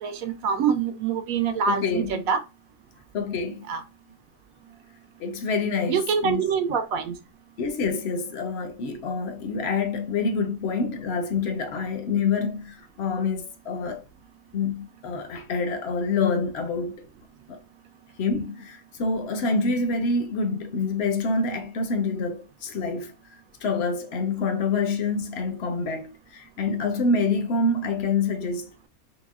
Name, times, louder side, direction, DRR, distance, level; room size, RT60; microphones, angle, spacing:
voice 1, 0.0-2.4 3.7-3.8 5.9-7.1, right 6 dB, 80° right, 1.0 m, -25 dB
voice 2, 1.7-2.2 3.1-3.7 5.2-6.4 7.6-14.0 14.5-17.1 17.5-17.6 18.2-23.1 23.6-28.9, left 4 dB, 65° left, 0.7 m, -27 dB
6.0 x 2.1 x 2.3 m
omnidirectional pair, 1.5 m